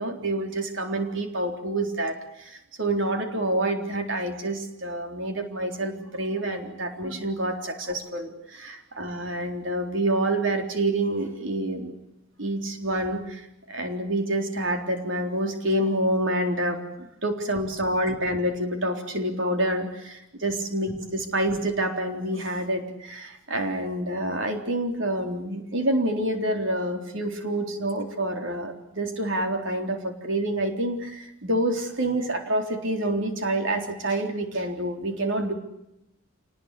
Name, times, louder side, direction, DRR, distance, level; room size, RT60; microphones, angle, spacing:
voice 1, 0.0-11.9 12.4-35.5, right 1 dB, 60° right, 4 dB, 3.8 m, -27 dB
27.0 x 20.0 x 8.5 m, 0.85 s
head